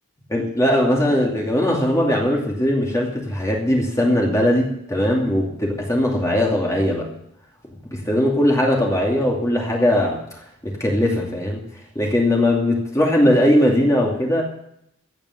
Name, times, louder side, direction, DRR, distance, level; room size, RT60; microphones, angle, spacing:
voice 1, 0.3-7.1 7.9-11.6 11.9-14.4, left 1 dB, 15° left, -1 dB, 2.6 m, -19 dB
15.5 x 8.8 x 6.7 m, 0.73 s
head